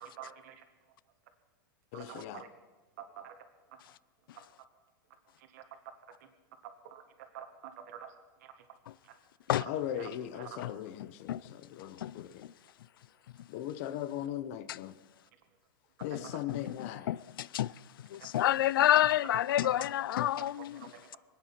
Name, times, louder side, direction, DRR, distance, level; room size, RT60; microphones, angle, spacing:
voice 1, 0.0-0.5 1.9-2.5 3.0-3.3 5.5-5.6 6.9-7.0 7.3-8.1 10.0-10.1 10.4-10.6 16.1-16.3 18.3-18.5 19.6-19.7 20.4-20.5 20.8-20.9, right 9 dB, 50° right, 1.6 m, -47 dB
voice 2, 1.9-2.4 9.7-12.4 13.5-14.9 16.0-17.1, left 11 dB, 40° left, 0.8 m, -39 dB
voice 3, 11.0-11.4 12.0-12.1 14.7-14.8 16.0-17.7 18.1-20.9, left 13 dB, 85° left, 0.4 m, -29 dB
25.0 x 9.3 x 5.9 m
supercardioid pair, 170°, 11 cm